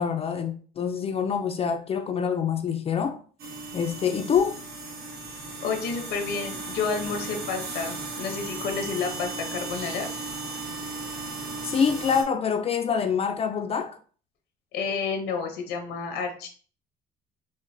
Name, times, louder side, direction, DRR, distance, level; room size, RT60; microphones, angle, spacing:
voice 1, 0.0-3.2 3.7-4.6 11.6-14.0, left 7 dB, 35° left, 0.4 m, -26 dB
sound 1, 3.4-12.2, right 3 dB, 75° right, 1.1 m, -36 dB
voice 2, 5.6-10.1 14.7-16.5, left 5 dB, 90° left, 0.8 m, -30 dB
5.1 x 2.1 x 2.6 m
cardioid pair, 110°, 17 cm